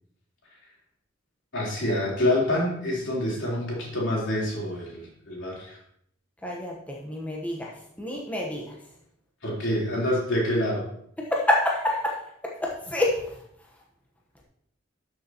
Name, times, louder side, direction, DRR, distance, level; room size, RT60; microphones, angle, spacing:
voice 1, 1.5-5.8 9.4-10.8, left 1 dB, 70° left, -4 dB, 3.6 m, -27 dB
voice 2, 6.4-8.7 11.2-13.4, left 1 dB, 10° left, -2 dB, 1.0 m, -28 dB
12.5 x 6.6 x 2.9 m, 0.71 s
head